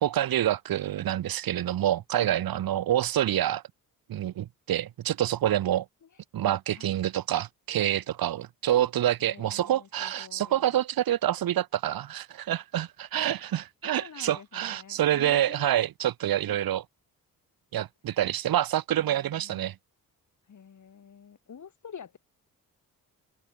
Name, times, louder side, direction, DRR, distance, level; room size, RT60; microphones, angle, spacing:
voice 1, 0.0-3.6 4.1-5.9 6.3-16.8 17.7-19.8, right 12 dB, 80° right, 1.6 m, -27 dB
voice 2, 9.2-10.8 13.1-15.7 19.0-19.6 20.5-22.2, left 7 dB, 55° left, 5.2 m, -48 dB
cardioid pair, 85°, 35 cm